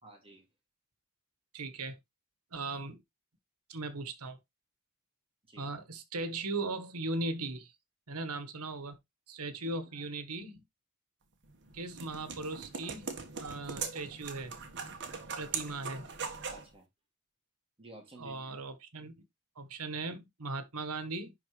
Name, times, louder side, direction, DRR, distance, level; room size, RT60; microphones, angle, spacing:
voice 1, 0.0-0.5 5.5-5.7 9.7-9.8 16.5-16.9 17.8-18.6, right 1 dB, 25° right, 2.3 m, -52 dB
voice 2, 1.5-2.0 2.5-3.0 3.7-4.4 5.6-7.7 8.1-9.0 9.3-10.6 11.7-14.5 15.4-16.0 18.2-19.1 19.6-21.3, right 2 dB, 90° right, 1.3 m, -38 dB
sound 1, 11.4-16.7, right 5 dB, 55° right, 1.5 m, -41 dB
10.5 x 3.9 x 3.2 m
head